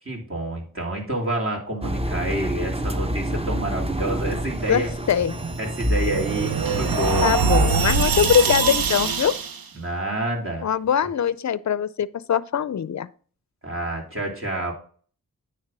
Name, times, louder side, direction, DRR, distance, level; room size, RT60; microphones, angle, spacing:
voice 1, 0.1-4.9 5.6-7.9 9.8-10.7 13.6-14.7, right 1 dB, 35° right, 2.9 m, -28 dB
Engine, 1.8-7.6, equal, 15° right, 0.8 m, -28 dB
voice 2, 4.7-5.4 7.2-9.4 10.6-13.1, left 8 dB, 50° left, 0.5 m, -22 dB
sound 1, 5.2-9.7, right 5 dB, 70° right, 0.8 m, -23 dB
9.6 x 3.4 x 6.0 m
cardioid pair, 45°, 37 cm